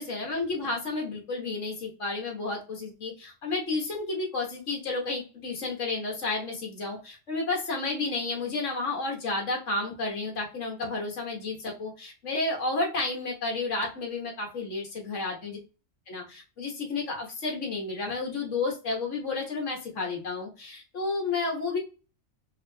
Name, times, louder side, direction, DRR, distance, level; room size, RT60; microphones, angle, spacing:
voice 1, 0.0-15.6 16.1-21.8, left 3 dB, 70° left, 0 dB, 1.6 m, -31 dB
4.8 x 2.8 x 2.7 m, 0.34 s
omnidirectional pair, 1.3 m